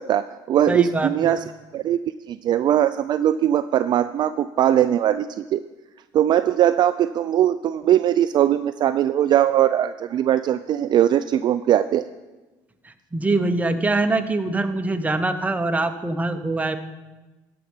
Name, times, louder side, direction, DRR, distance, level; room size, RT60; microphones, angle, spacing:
voice 1, 0.0-1.4 1.7-2.0 2.3-5.6 6.1-12.1, right 11 dB, 45° right, 12 dB, 0.3 m, -20 dB
voice 2, 0.7-1.4 12.8-16.8, right 2 dB, 15° right, 7 dB, 0.9 m, -23 dB
13.5 x 5.7 x 5.6 m, 1.1 s
supercardioid pair, 80°, 10 cm